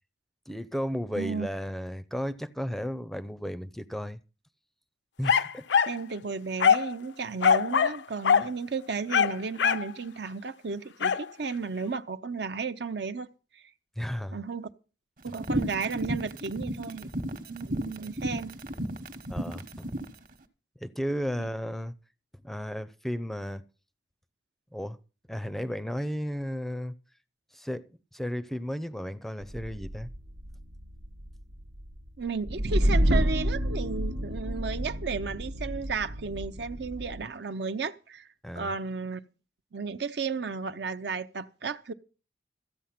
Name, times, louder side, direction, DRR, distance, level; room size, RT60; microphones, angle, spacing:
voice 1, 0.5-4.2 5.2-5.7 14.0-14.4 19.3-19.9 20.8-21.9 22.4-23.6 24.7-25.0 25.3-26.9 27.5-30.1 38.4-38.7, equal, ahead, 0.5 m, -34 dB
voice 2, 1.2-1.5 5.9-13.3 13.5-13.6 14.3-14.7 15.2-17.1 17.5-18.6 21.4-21.5 32.2-38.3 38.5-39.2 39.7-41.9, right 5 dB, 65° right, 0.6 m, -34 dB
sound 1, 5.2-6.0 6.6-6.9 7.4-8.0 8.2-8.5 9.1-9.9 11.0-11.2, left 7 dB, 75° left, 0.5 m, -22 dB
sound 2, 15.3-20.1, right 1 dB, 45° right, 1.2 m, -33 dB
sound 3, 29.4-37.3, equal, 90° right, 1.1 m, -29 dB
14.5 x 8.5 x 5.8 m
head